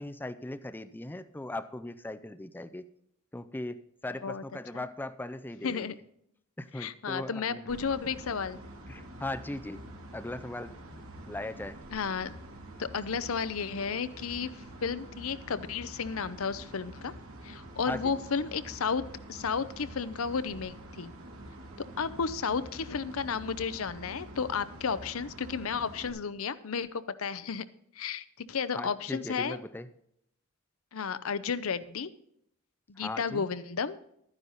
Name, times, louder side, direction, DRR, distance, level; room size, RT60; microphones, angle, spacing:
voice 1, 0.0-2.9 3.3-6.0 6.6-7.8 8.9-9.9 10.1-10.8 11.3-11.8 17.9-18.1 28.7-29.9 33.0-33.4, left 1 dB, 10° left, 12 dB, 0.4 m, -39 dB
voice 2, 5.6-5.9 6.8-8.6 11.9-12.3 12.8-17.1 17.4-19.0 19.3-21.1 22.0-27.6 27.9-29.6 30.9-32.1 32.9-34.0, left 6 dB, 70° left, 15 dB, 0.7 m, -33 dB
sound 1, 7.7-26.1, right 1 dB, 75° right, 2.4 m, -46 dB
12.5 x 9.8 x 4.0 m, 0.74 s
head